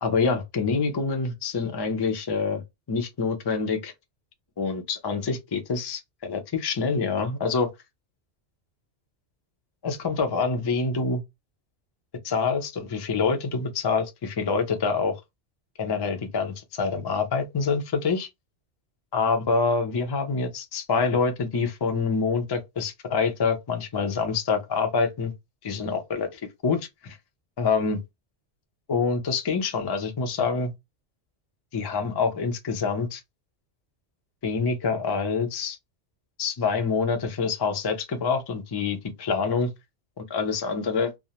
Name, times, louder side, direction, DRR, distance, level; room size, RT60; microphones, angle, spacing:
voice 1, 0.0-2.6 2.9-3.9 4.6-7.7 9.8-11.2 12.2-15.2 15.8-18.3 19.1-25.3 25.6-27.2 27.6-28.0 28.9-30.7 31.7-33.2 34.4-35.8 36.4-39.7 40.2-41.1, left 4 dB, 40° left, 0.3 m, -26 dB
2.4 x 2.0 x 2.8 m
omnidirectional pair, 1.2 m